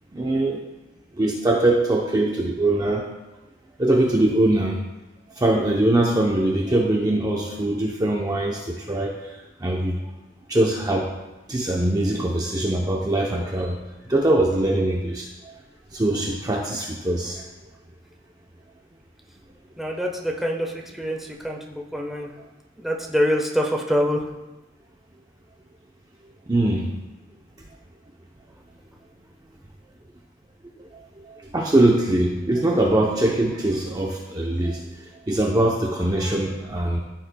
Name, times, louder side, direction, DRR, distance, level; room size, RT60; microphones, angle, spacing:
voice 1, 0.1-0.6 1.2-3.0 3.8-4.8 5.3-9.2 9.6-10.0 10.5-11.1 11.5-13.8 14.1-15.3 15.9-17.4 26.5-26.9 30.8-37.0, right 1 dB, 20° right, -1 dB, 0.7 m, -22 dB
voice 2, 19.8-22.3 22.8-24.3, equal, ahead, 0 dB, 1.0 m, -25 dB
14.5 x 7.5 x 2.2 m, 1.1 s
head